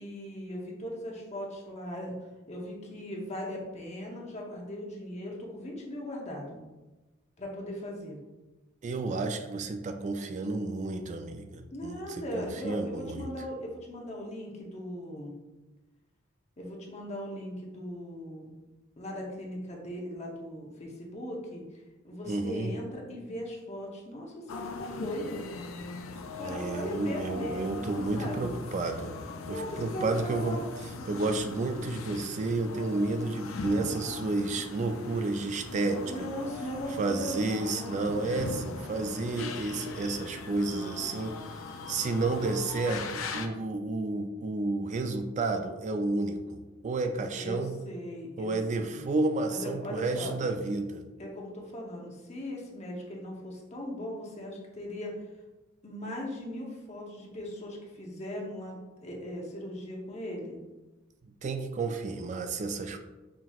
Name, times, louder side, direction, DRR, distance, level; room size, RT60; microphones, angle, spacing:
voice 1, 0.0-2.2 2.5-6.6 7.4-8.2 11.7-15.3 16.6-18.5 19.0-21.6 22.0-25.5 26.4-28.5 29.5-30.6 36.1-38.0 47.3-49.1 49.5-50.3 51.2-55.1 55.8-58.8 59.0-60.6, left 1 dB, 35° left, -1 dB, 0.8 m, -39 dB
voice 2, 8.8-13.3 22.2-22.7 26.4-29.1 29.5-30.6 31.1-36.3 36.9-41.4 41.9-47.7 48.4-51.0 61.4-63.0, right 3 dB, 35° right, 6 dB, 0.3 m, -31 dB
sound 1, 24.5-43.5, left 3 dB, 75° left, 0.4 m, -40 dB
5.8 x 2.8 x 2.3 m, 1.1 s
head